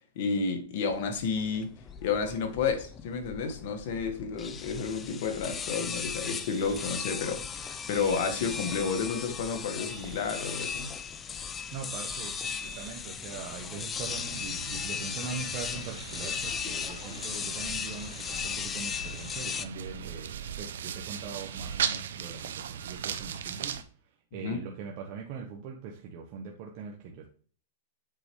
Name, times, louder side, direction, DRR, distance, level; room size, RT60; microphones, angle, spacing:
voice 1, 0.1-1.7 2.0-10.9 24.3-24.6, left 5 dB, 55° left, 5 dB, 1.7 m, -31 dB
sound 1, 0.9-19.7, left 7 dB, 20° left, 0.5 m, -37 dB
sound 2, 5.9-7.0 7.9-9.0 9.9-11.0 11.9-13.0, right 18 dB, 25° right, 1.0 m, -49 dB
voice 2, 11.7-23.8 24.0-27.3, right 6 dB, 45° right, 0 dB, 1.2 m, -41 dB
sound 3, 14.1-23.8, right 8 dB, 85° right, 0.8 m, -38 dB
7.9 x 4.9 x 3.2 m, 0.43 s
hypercardioid pair, 140°, 0 cm